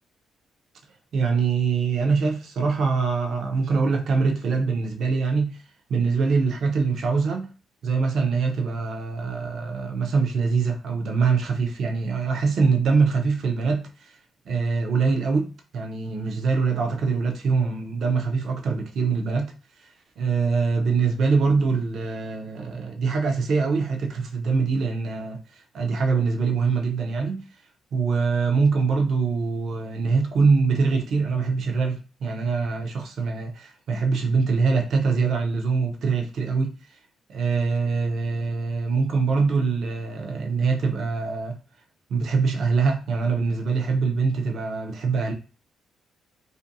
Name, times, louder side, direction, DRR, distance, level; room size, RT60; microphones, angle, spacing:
voice 1, 1.1-5.6 5.9-7.5 7.8-14.1 14.5-19.5 20.2-27.4 27.9-36.8 37.3-41.6 42.1-45.3, right 4 dB, 65° right, 0.6 m, -23 dB
2.5 x 2.5 x 2.6 m
cardioid pair, 90°, 0 cm